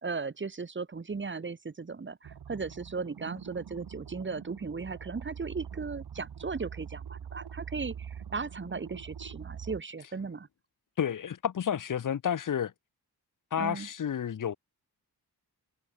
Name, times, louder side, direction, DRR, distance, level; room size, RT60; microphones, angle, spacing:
voice 1, 0.0-10.5 13.6-13.9, right 4 dB, 30° right, 0.9 m, -37 dB
sound 1, 2.2-9.8, right 8 dB, 75° right, 1.3 m, -44 dB
voice 2, 11.0-12.7 13.5-14.6, left 8 dB, 50° left, 0.7 m, -30 dB
wide cardioid pair, 100°, 39 cm